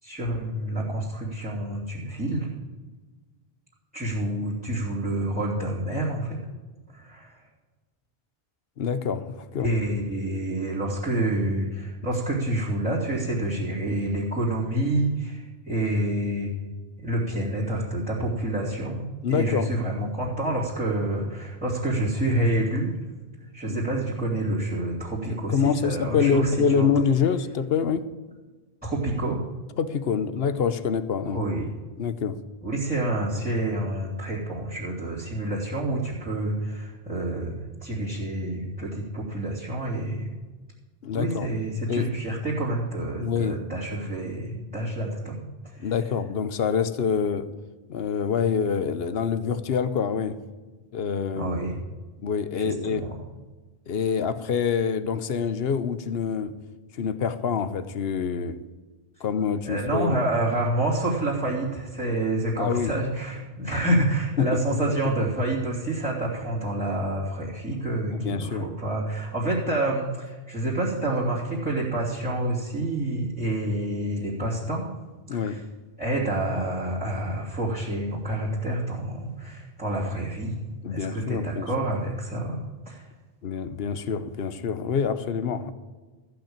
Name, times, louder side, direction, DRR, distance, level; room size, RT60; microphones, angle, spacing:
voice 1, 0.0-2.5 3.9-6.4 6.9-7.5 9.6-16.5 17.0-23.0 23.5-26.9 28.8-29.4 31.3-31.7 32.6-40.3 41.1-45.9 51.4-51.8 52.5-53.1 59.6-74.9 75.3-75.6 76.0-80.5 80.9-83.1, right 1 dB, 10° right, -7 dB, 2.8 m, -28 dB
voice 2, 8.8-9.7 19.2-19.7 23.7-23.8 25.3-28.1 29.8-31.4 32.0-32.4 41.0-41.5 41.9-42.1 43.2-43.6 45.8-47.5 47.9-50.4 50.9-51.6 52.2-53.0 53.9-56.5 56.9-58.5 59.2-60.2 62.6-62.9 64.4-64.6 68.1-68.7 75.3-75.6 80.8-81.7 83.4-85.7, left 6 dB, 75° left, 13 dB, 1.0 m, -26 dB
14.5 x 5.9 x 8.7 m, 1.3 s
omnidirectional pair, 1.0 m